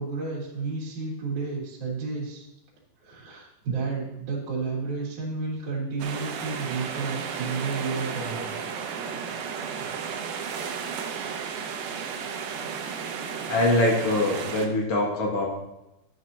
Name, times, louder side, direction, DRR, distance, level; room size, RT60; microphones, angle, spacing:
voice 1, 0.0-2.5 3.0-8.5 9.3-9.4 9.8-10.0, right 4 dB, 60° right, -7 dB, 2.9 m, -32 dB
sound 1, 6.0-14.7, right 6 dB, 75° right, 2.1 m, -33 dB
voice 2, 13.5-15.5, left 1 dB, 65° left, -1 dB, 1.5 m, -23 dB
11.5 x 8.0 x 2.7 m, 0.93 s
omnidirectional pair, 4.3 m